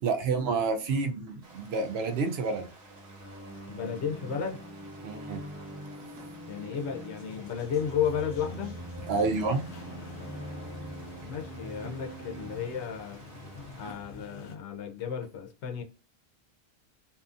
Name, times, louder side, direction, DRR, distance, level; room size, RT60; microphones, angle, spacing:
voice 1, 0.0-2.7 5.0-6.3 9.1-10.3 13.8-14.0, right 4 dB, 75° right, 0.8 m, -30 dB
sound 1, 1.4-13.9, right 2 dB, 55° right, 1.2 m, -54 dB
sound 2, 2.6-13.6, right 1 dB, 20° right, 0.5 m, -44 dB
voice 2, 3.7-4.6 6.5-8.7 11.3-13.2 13.8-15.8, left 7 dB, 90° left, 0.9 m, -33 dB
sound 3, 7.2-14.6, left 5 dB, 60° left, 0.7 m, -48 dB
2.7 x 2.4 x 2.4 m
omnidirectional pair, 1.1 m